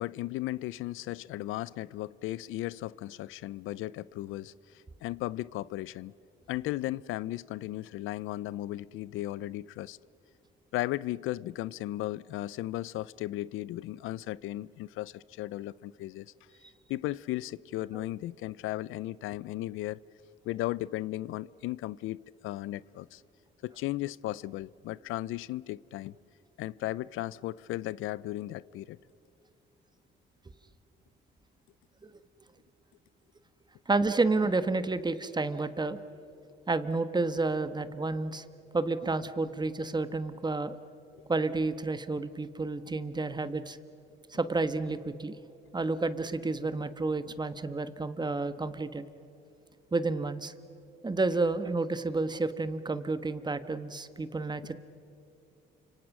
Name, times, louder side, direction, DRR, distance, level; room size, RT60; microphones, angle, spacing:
voice 1, 0.0-6.1 6.5-10.0 10.7-16.3 16.9-20.0 20.4-23.2 23.6-26.2 26.6-29.0 41.1-41.2, left 16 dB, 90° left, 0.5 m, -36 dB
voice 2, 33.9-36.0 36.7-38.4 38.7-40.8 41.3-43.8 44.3-45.4 45.7-49.0 49.9-50.5 51.0-54.7, right 3 dB, 20° right, 1.3 m, -30 dB
29.5 x 26.0 x 6.1 m
cardioid pair, 90°, 20 cm